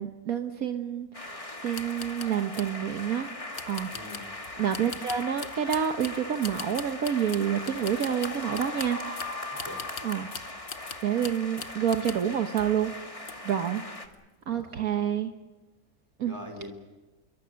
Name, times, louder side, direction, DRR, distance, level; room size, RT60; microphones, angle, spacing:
voice 1, 0.0-3.3 3.7-3.9 4.6-9.0 10.0-10.3 11.0-12.9 13.2-13.8 14.5-15.3 16.2-16.3, right 8 dB, 70° right, 6 dB, 1.5 m, -28 dB
sound 1, 1.1-14.1, left 2 dB, 20° left, 2.1 m, -39 dB
sound 2, 1.7-2.8 3.5-12.3 12.6-12.8 13.2-13.7 14.0-14.2, left 6 dB, 45° left, 1.2 m, -42 dB
voice 2, 3.9-4.2 9.5-9.8 14.5-14.7 16.2-16.7, left 1 dB, 15° right, 3 dB, 4.9 m, -43 dB
26.5 x 23.5 x 6.5 m, 1.1 s
omnidirectional pair, 1.6 m